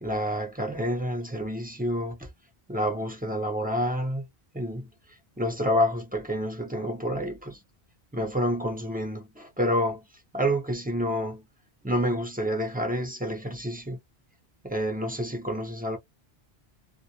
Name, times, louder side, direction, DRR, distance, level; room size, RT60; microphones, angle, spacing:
voice 1, 0.0-2.3 2.7-4.2 4.5-4.9 5.4-7.6 8.1-10.1 10.3-11.5 11.8-14.0 14.6-16.0, equal, 10° right, 0.6 m, -28 dB
2.2 x 2.1 x 2.8 m
omnidirectional pair, 1.0 m